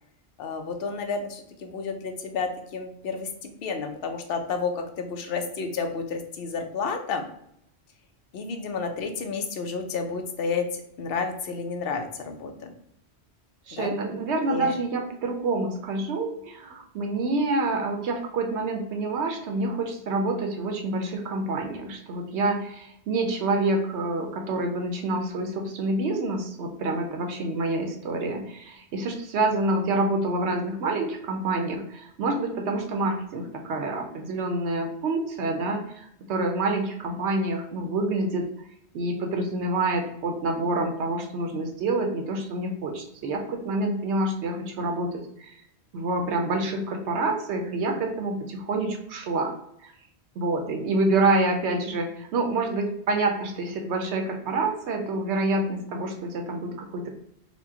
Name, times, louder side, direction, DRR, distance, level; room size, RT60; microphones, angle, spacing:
voice 1, 0.4-7.2 8.3-12.7 13.7-13.9 14.4-14.7, left 4 dB, 65° left, 5 dB, 0.8 m, -31 dB
voice 2, 13.7-38.7 38.9-45.6 45.9-49.6 49.8-49.9 50.4-57.1, right 2 dB, 80° right, 3 dB, 0.9 m, -27 dB
4.3 x 2.2 x 2.7 m, 0.73 s
omnidirectional pair, 1.1 m